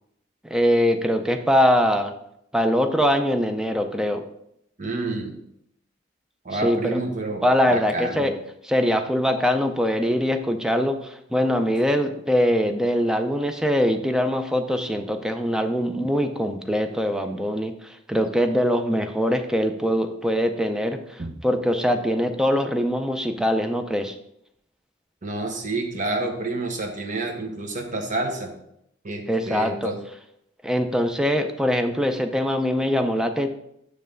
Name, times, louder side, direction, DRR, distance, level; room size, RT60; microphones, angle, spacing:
voice 1, 0.5-2.1 2.5-4.2 6.5-7.0 7.4-8.3 8.6-17.7 18.1-24.1 29.3-29.9 30.6-33.5, equal, 5° right, 6 dB, 0.5 m, -22 dB
voice 2, 4.8-5.4 6.4-8.3 21.2-21.3 25.2-28.5 29.0-30.0, right 2 dB, 40° right, 3 dB, 1.0 m, -29 dB
9.1 x 3.3 x 5.1 m, 0.76 s
head